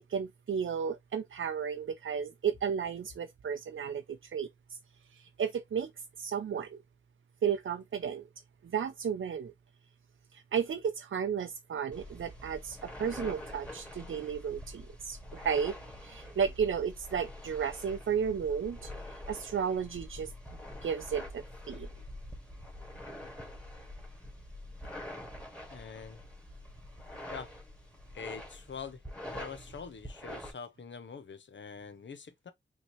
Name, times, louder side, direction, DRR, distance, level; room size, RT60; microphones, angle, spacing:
voice 1, 0.1-4.5 5.1-5.9 6.2-6.8 7.4-8.3 8.6-9.5 10.3-15.8 16.0-20.3 20.8-21.9, right 7 dB, 80° right, 0.5 m, -33 dB
sound 1, 11.9-30.5, left 1 dB, 5° left, 1.9 m, -46 dB
voice 2, 25.7-26.2 27.3-27.5 28.1-29.0 29.3-32.5, left 6 dB, 65° left, 0.7 m, -44 dB
5.5 x 2.9 x 3.0 m
wide cardioid pair, 80°, 20 cm